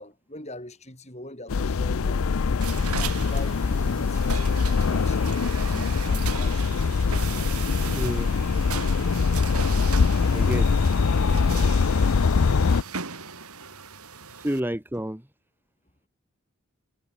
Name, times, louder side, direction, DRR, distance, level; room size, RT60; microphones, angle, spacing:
voice 1, 0.0-2.4 2.8-6.7 11.4-11.8, left 1 dB, 30° left, 6.5 m, -42 dB
sound 1, 1.5-12.8, left 5 dB, 75° left, 0.5 m, -23 dB
sound 2, 2.6-14.6, right 6 dB, 90° right, 4.8 m, -38 dB
voice 2, 5.7-6.2 7.9-8.3 10.3-10.7 14.4-15.2, equal, 10° right, 1.1 m, -30 dB
head